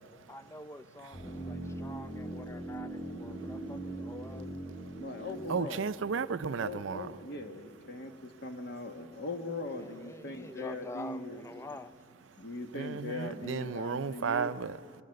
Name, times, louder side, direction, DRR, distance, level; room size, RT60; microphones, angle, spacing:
voice 1, 0.3-4.5 9.8-11.9, left 2 dB, 15° left, 13 dB, 0.4 m, -46 dB
voice 2, 1.0-1.7 3.4-3.5 4.9-5.0 5.5-7.1 12.7-15.0, right 5 dB, 70° right, 14 dB, 0.5 m, -35 dB
sound 1, 1.1-7.1 7.4-7.5, right 1 dB, 40° left, 3.1 m, -42 dB
voice 3, 5.0-5.9 6.5-11.5 12.4-14.5, left 2 dB, 60° left, 5 dB, 1.6 m, -40 dB
25.0 x 20.0 x 6.5 m, 2.5 s
head